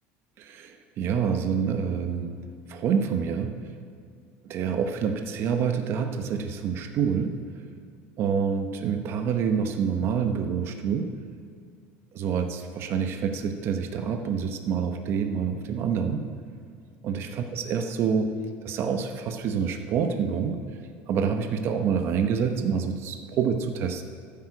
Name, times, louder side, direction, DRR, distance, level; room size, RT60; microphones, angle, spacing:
voice 1, 0.4-2.3 2.7-3.6 4.4-7.4 8.2-11.1 12.1-16.3 17.0-18.3 18.6-20.6 21.1-24.0, right 6 dB, 45° right, 6 dB, 0.9 m, -27 dB
14.5 x 8.6 x 4.9 m, 2.2 s
cardioid pair, 140°, 6 cm